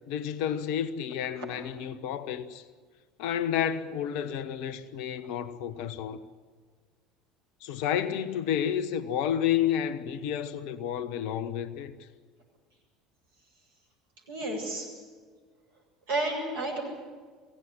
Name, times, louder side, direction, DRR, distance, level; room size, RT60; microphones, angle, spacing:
voice 1, 0.1-2.6 3.2-6.2 7.6-12.1, left 9 dB, 60° left, 1.3 m, -30 dB
voice 2, 14.3-14.9 16.1-16.8, right 2 dB, 65° right, 7.8 m, -31 dB
23.0 x 17.0 x 9.6 m
figure-of-eight pair, 65°, 0 cm